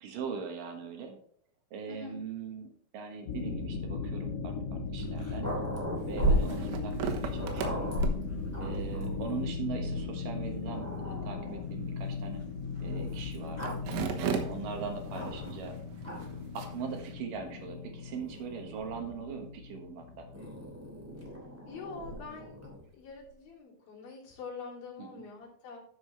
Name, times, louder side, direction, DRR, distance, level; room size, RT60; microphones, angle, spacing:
voice 1, 0.0-1.2 1.7-5.5 6.1-8.0 8.6-12.4 12.8-15.8 16.5-20.3 25.0-25.2, right 6 dB, 75° right, 4 dB, 2.0 m, -41 dB
sound 1, 3.3-20.3, left 4 dB, 75° left, 1.7 m, -38 dB
Growling, 4.9-9.5 10.2-10.3 10.7-11.7 12.8-15.6 16.0-16.5 17.4-19.2 20.3-22.9, equal, 5° right, 1.4 m, -36 dB
sound 2, 6.0-17.1, right 7 dB, 90° right, 3.8 m, -41 dB
voice 2, 6.5-7.3 14.2-14.5 21.6-22.6 22.9-25.8, left 4 dB, 50° left, -4 dB, 4.5 m, -45 dB
12.5 x 6.5 x 3.2 m, 0.62 s
omnidirectional pair, 5.7 m